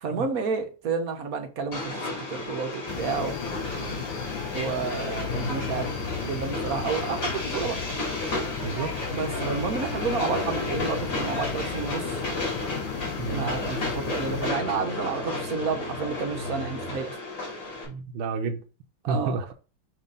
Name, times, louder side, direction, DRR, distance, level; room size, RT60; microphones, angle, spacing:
voice 1, 0.0-3.3 4.5-5.9 6.2-7.8 9.1-12.1 13.3-17.1 19.0-19.4, right 5 dB, 55° right, 1.2 m, -30 dB
Train, 1.7-17.9, left 2 dB, 55° left, 3.1 m, -33 dB
sound 1, 2.9-14.5, left 8 dB, 75° left, 1.4 m, -36 dB
sound 2, 5.1-17.0, left 2 dB, 35° left, 2.2 m, -38 dB
voice 2, 8.6-8.9 13.2-13.5 17.9-18.6 19.1-19.5, right 4 dB, 80° right, 1.6 m, -30 dB
5.9 x 3.3 x 5.3 m
omnidirectional pair, 2.2 m